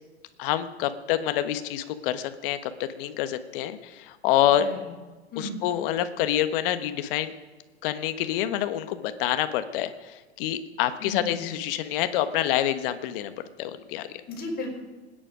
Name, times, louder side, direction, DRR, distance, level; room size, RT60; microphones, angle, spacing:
voice 1, 0.4-4.6 5.4-7.3 7.8-10.1 10.4-13.3 13.6-14.1, left 12 dB, 55° left, 11 dB, 1.4 m, -27 dB
voice 2, 4.6-4.9 5.3-5.6 11.0-11.5 14.3-14.8, left 2 dB, 30° left, 0 dB, 5.4 m, -34 dB
25.5 x 10.0 x 5.1 m, 1.3 s
hypercardioid pair, 100°, 32 cm